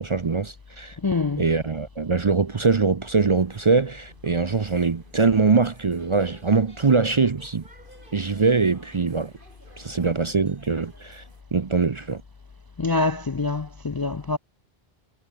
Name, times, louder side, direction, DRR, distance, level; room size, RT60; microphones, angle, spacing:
voice 1, 0.0-1.0 1.4-7.6 8.1-9.3 9.8-11.2 11.5-12.2, right 4 dB, 35° right, 0.6 m, -22 dB
voice 2, 1.0-1.4 12.8-14.4, left 3 dB, 30° left, 0.4 m, -25 dB
sound 1, 3.4-11.4, right 1 dB, 55° right, 5.6 m, -53 dB
omnidirectional pair, 1.0 m